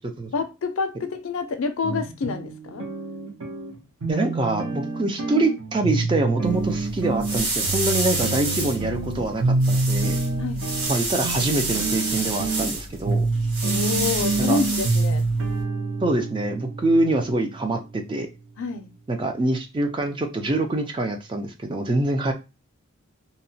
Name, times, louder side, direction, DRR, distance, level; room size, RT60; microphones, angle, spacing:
voice 1, 0.3-2.9 10.4-10.7 13.6-15.3 18.6-18.9, left 4 dB, 65° left, 0.4 m, -28 dB
sound 1, 1.8-18.1, right 3 dB, 65° right, 0.7 m, -27 dB
voice 2, 4.1-10.2 10.9-13.3 14.5-14.6 16.0-18.3 19.1-22.3, right 2 dB, 20° right, 0.3 m, -25 dB
sound 2, 6.4-15.6, right 2 dB, 85° right, 1.2 m, -29 dB
2.8 x 2.1 x 2.6 m
head